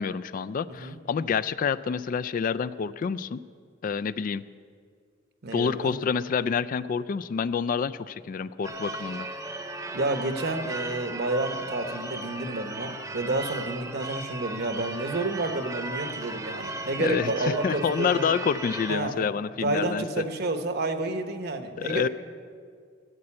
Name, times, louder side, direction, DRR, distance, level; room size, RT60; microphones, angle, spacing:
voice 1, 0.0-3.4 3.8-4.4 5.5-9.3 17.0-20.2 21.8-22.1, left 6 dB, 45° left, 15 dB, 0.3 m, -28 dB
voice 2, 5.4-5.9 9.9-18.3 18.9-19.3 19.6-22.1, right 2 dB, 55° right, 7 dB, 1.0 m, -30 dB
Church bell / Car / Alarm, 8.6-19.0, right 2 dB, 20° right, 0.8 m, -36 dB
13.5 x 7.7 x 8.6 m, 2.1 s
head